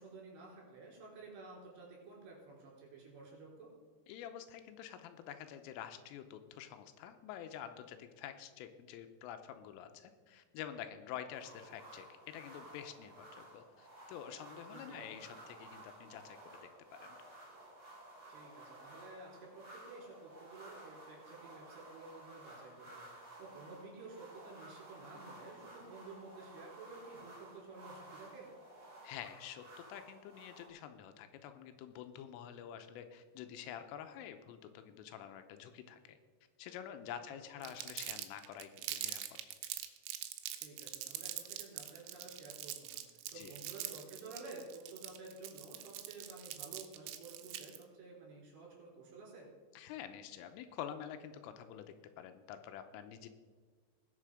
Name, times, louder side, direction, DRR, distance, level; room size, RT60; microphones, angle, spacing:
voice 1, 0.0-3.7 14.7-15.1 18.3-28.5 37.3-37.8 40.6-49.5, right 3 dB, 60° right, -3 dB, 5.9 m, -52 dB
voice 2, 4.1-16.7 17.0-17.2 29.0-36.2 36.6-39.4 43.4-43.5 49.8-53.3, left 9 dB, 90° left, 8 dB, 3.4 m, -48 dB
sound 1, 11.3-30.7, right 1 dB, 20° right, 2.9 m, -55 dB
Crumpling crinkling, 37.6-47.8, right 13 dB, 85° right, 3.3 m, -44 dB
19.5 x 6.6 x 4.9 m, 1.5 s
omnidirectional pair, 5.7 m